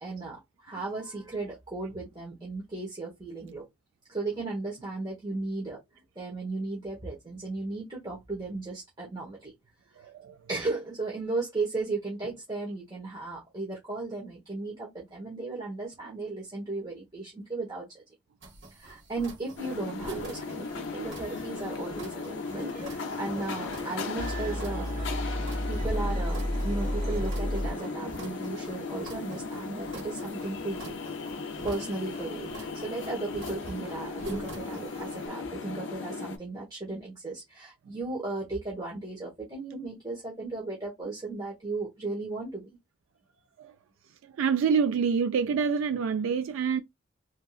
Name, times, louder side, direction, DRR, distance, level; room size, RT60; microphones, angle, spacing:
voice 1, 0.0-3.6 4.1-5.8 6.1-9.5 10.0-10.1 10.5-18.0 18.7-24.9 25.7-30.9 31.6-42.8, right 3 dB, 25° right, 1.2 m, -35 dB
voice 2, 10.0-10.4 31.9-32.0 37.9-38.0 43.6-43.7 44.2-46.8, right 6 dB, 80° right, 0.3 m, -27 dB
sound 1, 18.4-35.3, right 2 dB, 60° right, 1.2 m, -47 dB
sound 2, 19.6-36.4, left 4 dB, 65° left, 0.5 m, -37 dB
sound 3, 22.5-22.9 23.1-28.1, equal, 40° right, 1.8 m, -32 dB
3.6 x 2.8 x 2.4 m
head